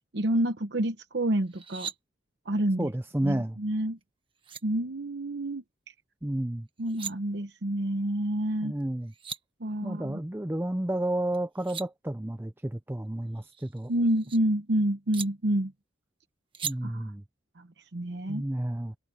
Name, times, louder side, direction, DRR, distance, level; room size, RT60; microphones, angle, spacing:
voice 1, 0.1-1.9 2.5-2.9 3.2-4.0 4.6-5.6 6.8-8.7 9.6-10.2 13.9-15.7 16.8-17.1 17.9-18.4, right 1 dB, 60° right, 0.9 m, -28 dB
sound 1, 1.5-2.0 4.0-4.1 4.4-4.6 6.7-7.1 8.8-8.9 9.1-9.4 11.3-11.9 13.4-14.4 15.1-15.3 16.5-16.7, right 7 dB, 25° right, 1.4 m, -38 dB
voice 2, 2.8-3.6 6.2-6.7 8.6-9.1 9.8-13.9 16.6-17.2 18.3-19.0, right 1 dB, 10° right, 0.5 m, -31 dB
head